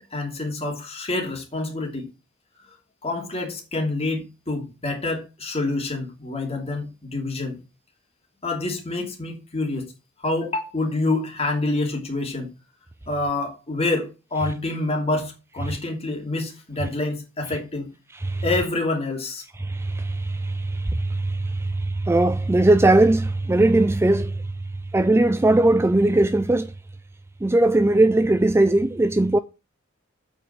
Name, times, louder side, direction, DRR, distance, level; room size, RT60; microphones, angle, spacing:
voice 1, 0.0-2.1 3.0-7.5 8.4-9.9 10.2-12.5 13.1-17.9 18.4-19.4, left 2 dB, 30° left, 2.7 m, -27 dB
voice 2, 19.6-24.4 24.9-26.7 27.4-29.4, right 2 dB, 10° right, 0.4 m, -19 dB
8.2 x 5.5 x 7.3 m
head